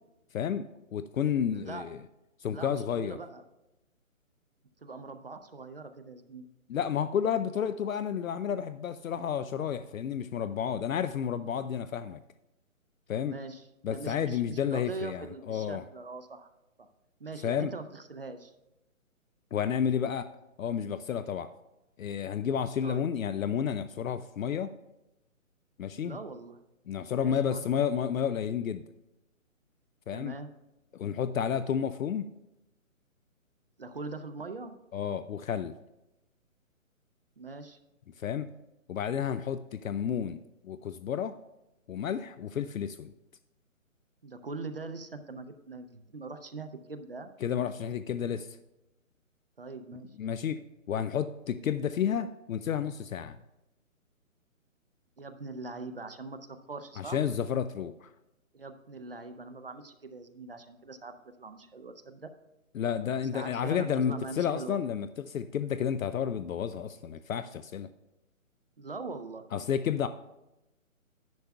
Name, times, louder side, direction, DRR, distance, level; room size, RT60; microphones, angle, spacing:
voice 1, 0.3-2.0 2.4-3.2 6.7-12.2 13.1-13.4 13.8-15.8 17.4-17.7 19.5-20.3 20.6-21.5 22.0-24.7 25.8-26.2 26.9-28.8 30.1-30.3 30.9-32.3 34.9-35.7 38.2-38.5 38.9-40.4 40.6-41.3 41.9-43.1 47.4-48.6 50.2-53.4 57.0-58.1 62.7-67.9 69.5-70.1, left 8 dB, 75° left, 13 dB, 0.5 m, -31 dB
voice 2, 1.5-1.8 2.5-3.4 4.8-6.5 13.2-16.5 17.2-18.5 22.8-23.0 26.0-26.6 27.1-27.6 30.1-30.5 33.8-34.8 37.4-37.8 44.2-47.3 49.6-50.1 55.2-57.2 58.5-62.3 63.3-64.8 68.8-69.5, right 3 dB, 45° right, 9 dB, 0.5 m, -42 dB
11.5 x 10.5 x 2.3 m, 0.96 s
hypercardioid pair, 170°, 41 cm